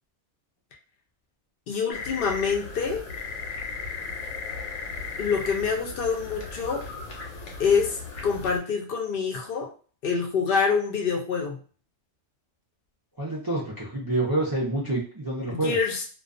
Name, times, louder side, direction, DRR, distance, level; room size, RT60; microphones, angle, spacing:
voice 1, 1.7-3.0 5.2-6.9 7.6-9.7 10.0-11.6 15.5-16.0, left 5 dB, 60° left, 2 dB, 0.7 m, -26 dB
sound 1, 1.9-8.6, left 4 dB, 90° left, 1.0 m, -36 dB
voice 2, 13.2-15.8, right 2 dB, 35° right, -7 dB, 0.3 m, -27 dB
2.3 x 2.3 x 2.4 m, 0.40 s
omnidirectional pair, 1.3 m